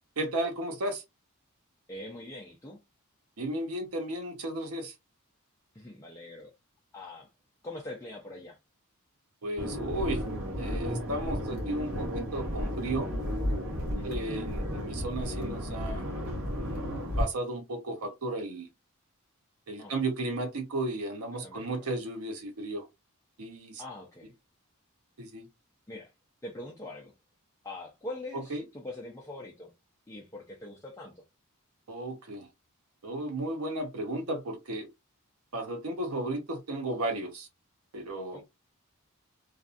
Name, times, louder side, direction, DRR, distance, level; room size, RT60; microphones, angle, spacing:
voice 1, 0.2-1.0 3.4-4.9 9.4-10.2 10.6-13.1 14.0-16.1 17.2-18.7 19.7-22.9 23.4-23.8 25.2-25.4 28.3-28.6 31.9-32.5 33.0-34.9 35.5-37.5 37.9-38.4, right 1 dB, 75° right, 0.7 m, -34 dB
voice 2, 1.9-2.8 5.7-6.5 6.9-7.3 7.6-8.6 14.0-14.2 19.8-20.0 21.4-21.9 23.8-24.3 25.9-26.1 26.4-27.1 27.6-29.7 30.1-31.2 38.3-38.4, left 1 dB, 15° left, 0.5 m, -43 dB
sound 1, 9.6-17.2, equal, 60° right, 1.1 m, -33 dB
2.5 x 2.2 x 2.4 m
head